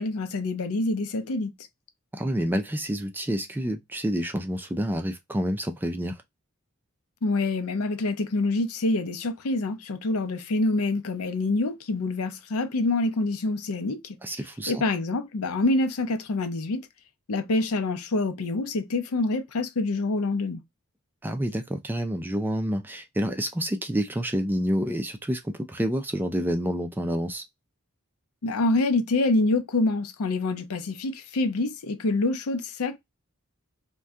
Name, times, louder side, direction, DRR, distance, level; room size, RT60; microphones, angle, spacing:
voice 1, 0.0-1.5 7.2-14.2 14.7-16.9 17.3-20.6 28.4-33.0, left 2 dB, 85° left, 0.6 m, -26 dB
voice 2, 2.1-6.2 14.2-14.8 21.2-27.4, equal, 10° right, 0.3 m, -28 dB
2.6 x 2.3 x 3.4 m
head